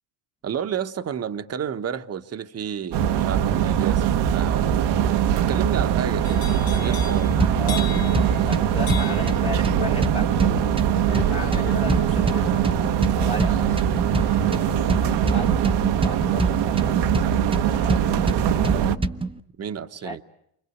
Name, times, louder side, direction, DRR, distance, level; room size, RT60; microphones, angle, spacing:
voice 1, 0.4-4.9 5.3-7.3 19.6-20.2, right 8 dB, 35° right, 1.3 m, -31 dB
sound 1, 2.9-19.0, right 9 dB, 65° right, 1.3 m, -22 dB
sound 2, 6.2-18.2 18.5-19.0, left 7 dB, 55° left, 2.3 m, -41 dB
sound 3, 7.4-19.4, right 2 dB, 10° right, 1.1 m, -27 dB
voice 2, 7.5-12.5 13.0-14.6 15.2-17.4 17.6-18.5 20.0-20.2, left 2 dB, 15° left, 1.2 m, -36 dB
28.5 x 25.5 x 8.2 m
supercardioid pair, 100°, 42 cm